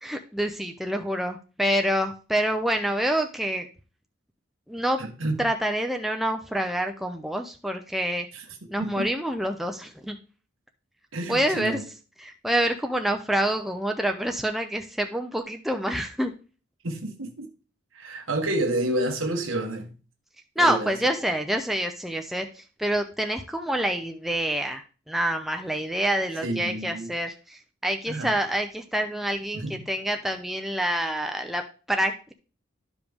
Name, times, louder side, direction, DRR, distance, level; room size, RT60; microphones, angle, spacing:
voice 1, 0.0-3.7 4.7-5.0 5.4-8.3 8.7-10.2 11.3-11.8 12.2-16.3 20.6-32.3, right 1 dB, ahead, 0.5 m, -27 dB
voice 2, 5.0-5.4 8.8-9.1 11.1-11.8 16.8-17.5 17.9-19.9 20.6-20.9 26.4-27.1 28.1-28.3 29.5-29.7, right 1 dB, 90° right, 1.4 m, -29 dB
12.0 x 5.0 x 3.5 m
head